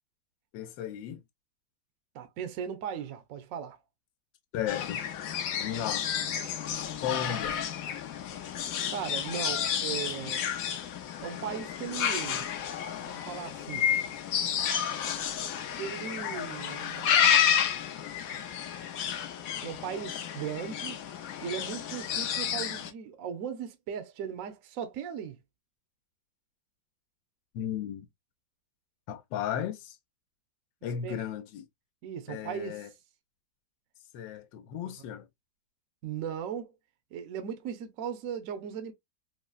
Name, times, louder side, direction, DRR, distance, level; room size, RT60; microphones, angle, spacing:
voice 1, 0.5-1.2 4.5-5.0 5.6-6.0 7.0-7.6 27.5-28.1 29.1-30.0 30.8-31.6 32.3-32.9 34.1-35.3, left 9 dB, 85° left, 1.3 m, -35 dB
voice 2, 2.1-3.8 8.9-10.5 11.2-12.4 13.0-13.9 15.8-17.5 19.6-21.0 21.4-25.4 31.0-31.2 32.0-32.9 34.8-34.9 36.0-36.7 37.1-38.9, right 8 dB, 65° right, 0.8 m, -37 dB
sound 1, 4.7-22.9, left 8 dB, 70° left, 0.8 m, -31 dB
3.8 x 2.0 x 2.3 m
omnidirectional pair, 2.0 m